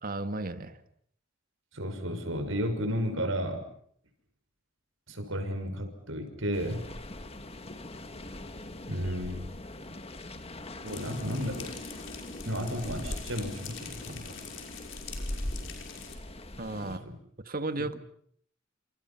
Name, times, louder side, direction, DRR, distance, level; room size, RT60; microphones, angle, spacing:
voice 1, 0.0-0.8 16.6-17.0 17.5-18.0, right 2 dB, 45° right, 9 dB, 1.8 m, -34 dB
voice 2, 1.7-3.6 5.1-6.8 8.9-9.4 10.8-11.7 12.4-14.3 16.8-17.1 17.8-17.9, equal, 85° right, 6 dB, 6.3 m, -33 dB
sound 1, 6.5-17.0, left 1 dB, 30° left, 2.0 m, -41 dB
sound 2, 10.8-16.1, left 5 dB, 70° left, 5.7 m, -43 dB
28.5 x 27.5 x 5.9 m, 0.64 s
head